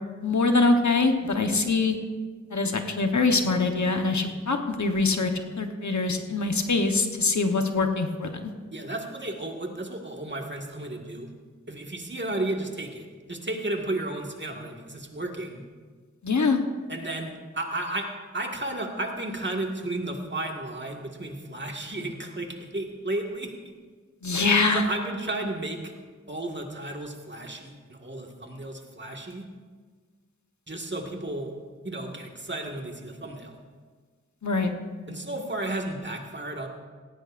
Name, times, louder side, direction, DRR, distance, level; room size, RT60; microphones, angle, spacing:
voice 1, 0.2-1.9 2.5-8.5 16.2-16.6 24.2-24.8 34.4-34.7, left 3 dB, 70° left, 5 dB, 1.2 m, -24 dB
voice 2, 8.7-11.3 11.7-15.6 16.9-23.7 24.4-25.9 26.3-29.5 30.7-31.5 31.8-33.6 35.1-36.7, right 2 dB, 35° right, 1 dB, 1.9 m, -33 dB
17.5 x 16.0 x 2.6 m, 1.5 s
wide cardioid pair, 55°, 30 cm